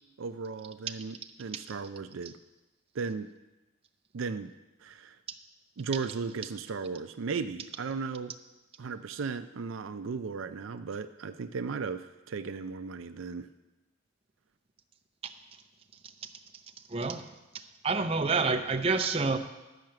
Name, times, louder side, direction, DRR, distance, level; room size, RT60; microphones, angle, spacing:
voice 1, 0.2-2.4 2.9-3.3 4.1-4.5 4.8-5.2 5.8-8.3 8.8-13.5, right 5 dB, 75° right, 9 dB, 0.4 m, -36 dB
voice 2, 16.9-17.2 17.5-19.4, right 4 dB, 30° right, 6 dB, 0.6 m, -28 dB
12.0 x 5.8 x 7.6 m, 1.1 s
head